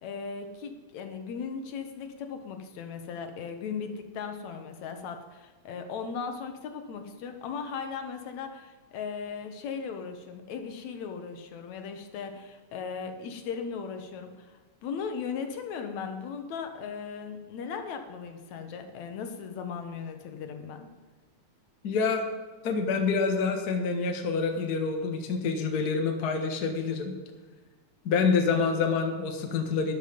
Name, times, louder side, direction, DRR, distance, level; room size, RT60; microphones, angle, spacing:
voice 1, 0.0-20.9, left 6 dB, 75° left, 6 dB, 2.4 m, -37 dB
voice 2, 21.8-22.3 22.6-27.1 28.0-29.9, left 5 dB, 40° left, 4 dB, 1.5 m, -27 dB
13.0 x 11.5 x 5.2 m, 1.3 s
omnidirectional pair, 3.3 m